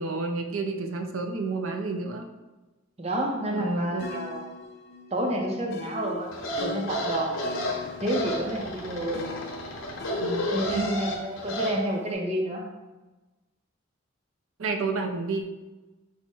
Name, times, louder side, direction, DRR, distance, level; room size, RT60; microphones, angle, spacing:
voice 1, 0.0-2.3 3.5-4.2 10.2-10.9 14.6-15.5, right 3 dB, 75° right, 5 dB, 0.5 m, -30 dB
voice 2, 3.0-4.4 5.1-6.3 6.6-7.3 8.0-9.2 10.5-12.6, right 1 dB, 30° right, 0 dB, 0.5 m, -29 dB
sound 1, 4.0-10.8, left 3 dB, 50° left, 0.4 m, -41 dB
sound 2, 6.3-11.8, equal, 75° left, 1.0 m, -32 dB
5.6 x 2.1 x 4.4 m, 1.2 s
head